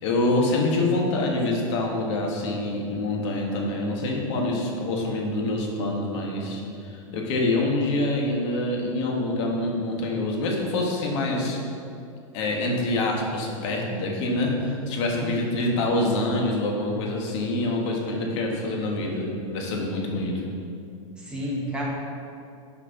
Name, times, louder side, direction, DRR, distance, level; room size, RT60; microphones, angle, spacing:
voice 1, 0.0-11.6 12.3-20.4, left 2 dB, 60° left, -1 dB, 1.7 m, -26 dB
voice 2, 15.1-15.5 21.2-21.8, equal, 5° right, -6 dB, 1.8 m, -31 dB
6.8 x 5.0 x 6.0 m, 2.5 s
hypercardioid pair, 125°, 17 cm